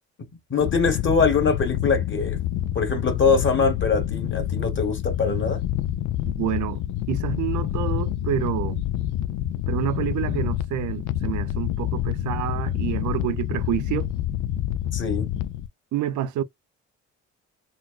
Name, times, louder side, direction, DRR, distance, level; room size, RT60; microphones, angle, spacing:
voice 1, 0.5-2.4 2.7-5.6 14.9-15.3, left 5 dB, 40° left, 1.4 m, -23 dB
sound 1, 0.6-15.7, left 12 dB, 80° left, 0.5 m, -27 dB
voice 2, 6.2-6.8 7.1-8.8 9.7-14.1 15.9-16.4, right 11 dB, 75° right, 0.6 m, -28 dB
4.0 x 2.2 x 2.3 m
cardioid pair, 90°, 30 cm